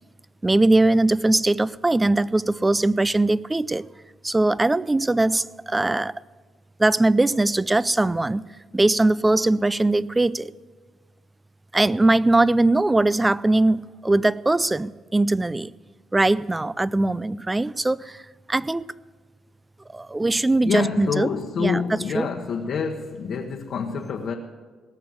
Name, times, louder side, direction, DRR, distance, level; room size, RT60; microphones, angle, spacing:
voice 1, 0.4-3.9 4.2-6.1 6.8-8.4 8.7-10.5 11.7-15.7 16.1-18.2 18.5-18.8 19.9-21.3 21.6-22.3, right 2 dB, 15° right, 20 dB, 0.3 m, -21 dB
voice 2, 20.6-24.3, left 6 dB, 65° left, 1 dB, 1.1 m, -27 dB
18.0 x 6.9 x 7.8 m, 1.5 s
cardioid pair, 90°, 0 cm